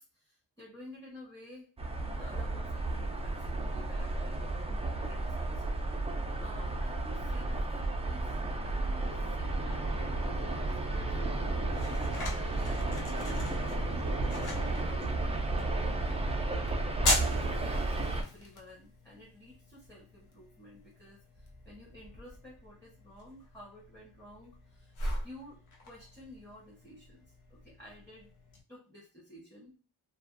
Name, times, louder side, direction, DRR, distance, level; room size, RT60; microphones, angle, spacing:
voice 1, 0.0-1.9 2.2-5.6 6.4-9.9 10.2-11.1 12.1-13.9 14.3-15.4 16.0-24.9 25.2-25.6 25.8-28.3 28.7-29.7, left 1 dB, 5° left, -5 dB, 0.9 m, -52 dB
sound 1, 1.8-18.2, right 2 dB, 15° right, 0.3 m, -33 dB
sound 2, 9.1-14.7, left 2 dB, 40° left, 0.6 m, -48 dB
sound 3, 11.1-28.6, left 1 dB, 80° left, 0.8 m, -40 dB
2.5 x 2.3 x 2.4 m, 0.37 s
wide cardioid pair, 70°, 49 cm